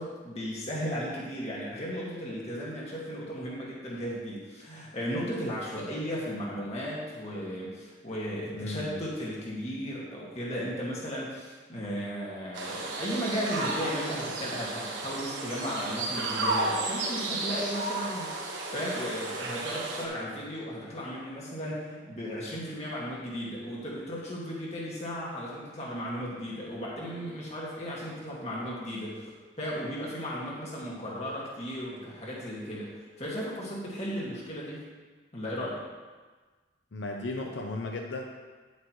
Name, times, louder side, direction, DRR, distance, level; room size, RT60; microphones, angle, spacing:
voice 1, 0.0-29.2 29.6-34.8 35.3-35.8, equal, 35° left, -5 dB, 2.0 m, -35 dB
voice 2, 8.5-9.0 36.9-38.2, left 2 dB, 80° left, 2 dB, 0.7 m, -35 dB
sound 1, 12.5-20.1, right 2 dB, 80° right, 1.4 m, -33 dB
10.0 x 8.2 x 3.2 m, 1.4 s
head